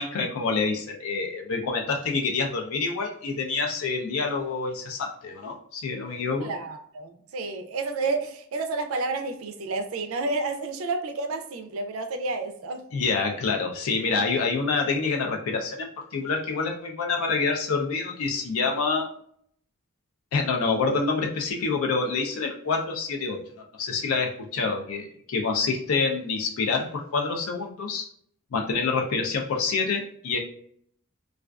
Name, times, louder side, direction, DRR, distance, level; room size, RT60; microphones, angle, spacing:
voice 1, 0.0-6.5 12.9-19.1 20.3-28.1 28.5-30.4, left 4 dB, 75° left, 1 dB, 0.4 m, -27 dB
voice 2, 6.4-12.9, right 3 dB, 75° right, 7 dB, 0.4 m, -30 dB
2.3 x 2.3 x 2.2 m, 0.65 s
head